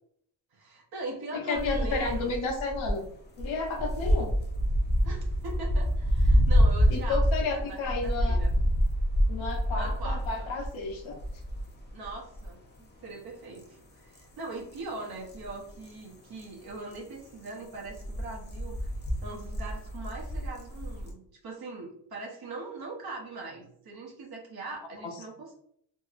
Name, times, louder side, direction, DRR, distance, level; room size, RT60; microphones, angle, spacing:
voice 1, 0.5-2.4 5.0-8.5 9.7-10.5 11.9-12.6 13.0-18.9 19.2-25.6, right 3 dB, 50° right, -1 dB, 0.9 m, -41 dB
voice 2, 1.3-3.1 3.4-4.3 6.9-8.4 9.3-11.2, left 3 dB, 75° left, 2 dB, 0.8 m, -32 dB
sound 1, 1.5-2.9 3.2-12.8 13.1-13.2 13.5-13.6 14.1-14.4 14.7-16.4 16.7-17.0 17.3-21.1, equal, 25° left, 0.5 m, -27 dB
2.9 x 2.8 x 2.4 m, 0.69 s
wide cardioid pair, 170°, 47 cm